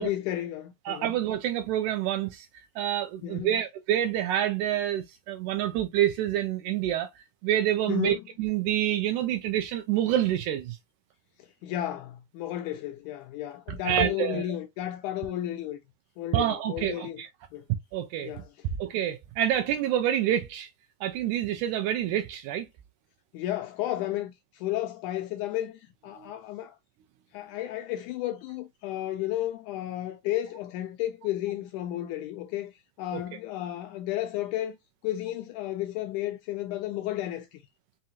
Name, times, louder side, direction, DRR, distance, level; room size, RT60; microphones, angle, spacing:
voice 1, 0.0-1.2 3.2-3.6 7.9-8.3 11.4-15.8 16.2-17.2 17.5-17.7 18.2-18.5 23.3-26.8 27.3-34.8 35.0-37.6, left 13 dB, 80° left, 1.8 m, -33 dB
voice 2, 0.9-2.5 2.8-10.8 13.8-14.4 16.3-17.3 17.9-18.3 18.8-20.7 21.0-22.7 33.1-33.2, right 11 dB, 80° right, 1.8 m, -27 dB
5.5 x 2.5 x 2.7 m
omnidirectional pair, 3.9 m